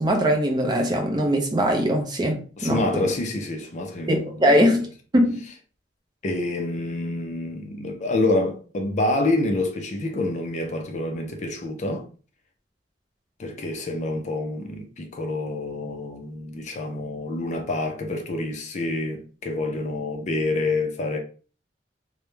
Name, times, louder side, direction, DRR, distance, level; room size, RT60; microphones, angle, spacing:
voice 1, 0.0-2.8 4.1-4.9 5.1-5.4, equal, 25° right, 0.5 m, -21 dB
voice 2, 2.6-4.7 6.2-12.1 13.4-21.2, left 2 dB, 40° left, 0.4 m, -27 dB
2.3 x 2.1 x 3.0 m
head